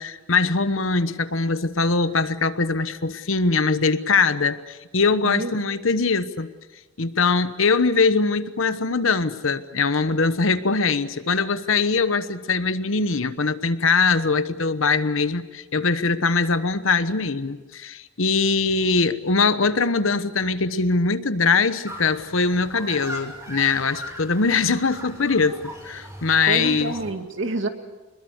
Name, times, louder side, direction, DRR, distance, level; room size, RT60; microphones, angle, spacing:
voice 1, 0.0-6.5 7.0-26.9, left 4 dB, 70° left, 12 dB, 1.2 m, -22 dB
sound 1, 21.9-27.1, equal, 15° right, 6.9 m, -39 dB
voice 2, 26.5-27.7, right 2 dB, 65° right, 6 dB, 2.2 m, -27 dB
26.0 x 21.5 x 8.1 m, 1.2 s
head